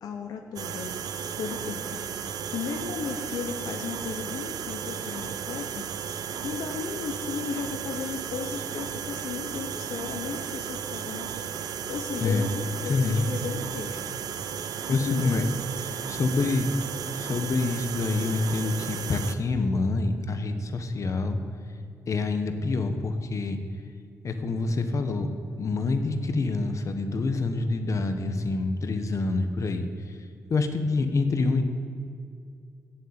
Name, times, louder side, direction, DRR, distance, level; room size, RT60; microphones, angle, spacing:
voice 1, 0.0-1.0 1.4-5.9 6.4-11.4 11.9-14.2 14.9-15.5, left 6 dB, 85° left, 4 dB, 0.8 m, -35 dB
sound 1, 0.6-19.4, right 8 dB, 85° right, 0.6 m, -34 dB
voice 2, 12.9-13.2 14.9-15.4 15.8-16.7 17.2-21.4 22.1-23.6 24.2-25.3 25.6-30.1 30.5-31.6, left 3 dB, 55° left, 7 dB, 1.1 m, -26 dB
8.3 x 7.9 x 8.7 m, 2.3 s
cardioid pair, 75°, 6 cm